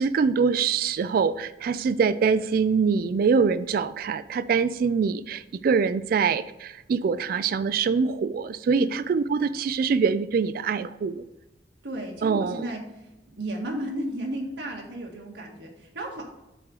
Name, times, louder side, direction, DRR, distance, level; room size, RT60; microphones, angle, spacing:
voice 1, 0.0-11.2 12.2-12.7, right 5 dB, 55° right, 14 dB, 0.3 m, -24 dB
voice 2, 11.8-16.2, right 1 dB, 75° right, 0 dB, 1.7 m, -34 dB
7.6 x 3.7 x 6.4 m, 0.95 s
head